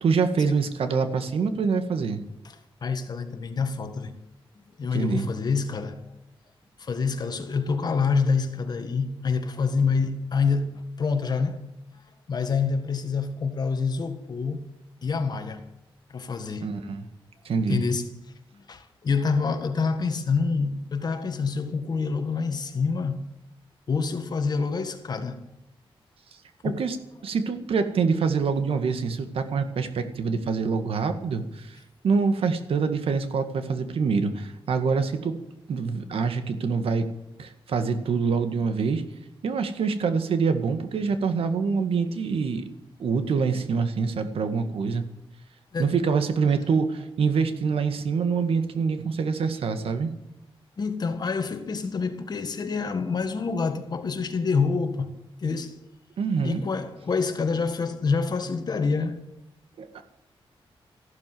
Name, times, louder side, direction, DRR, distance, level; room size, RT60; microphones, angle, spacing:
voice 1, 0.0-2.2 4.9-5.3 16.6-17.1 17.5-17.8 26.6-27.0 27.2-31.8 32.0-35.3 35.7-37.1 37.4-39.0 39.4-42.7 43.0-45.0 45.8-50.1 56.2-56.6 59.8-60.0, right 5 dB, 75° right, 1.9 m, -25 dB
voice 2, 2.8-4.1 4.6-6.2 6.8-11.6 12.3-14.7 15.0-15.7 16.1-16.8 17.7-18.1 18.5-23.2 23.9-25.4 26.6-26.9 45.7-45.9 50.8-55.1 55.4-55.8 56.4-59.2, left 5 dB, 45° left, 1.7 m, -27 dB
15.0 x 12.0 x 7.8 m
wide cardioid pair, 140°, 10 cm